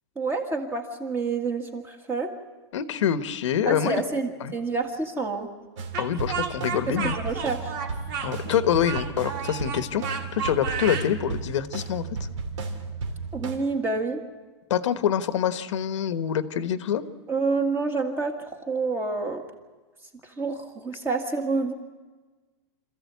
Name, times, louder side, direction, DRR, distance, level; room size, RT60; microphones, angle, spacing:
voice 1, 0.2-2.3 3.7-5.5 6.9-7.7 13.3-14.2 17.3-19.4 20.2-21.7, right 3 dB, 15° right, 5 dB, 1.8 m, -28 dB
voice 2, 2.7-4.0 4.4-4.5 6.0-7.2 8.2-12.1 14.7-17.0, left 9 dB, 80° left, 11 dB, 1.2 m, -26 dB
sound 1, 5.8-13.6, right 4 dB, 80° right, 3.1 m, -34 dB
Speech, 5.9-11.1, right 7 dB, 45° right, 2.3 m, -32 dB
26.0 x 14.5 x 8.3 m, 1.3 s
supercardioid pair, 160°, 15 cm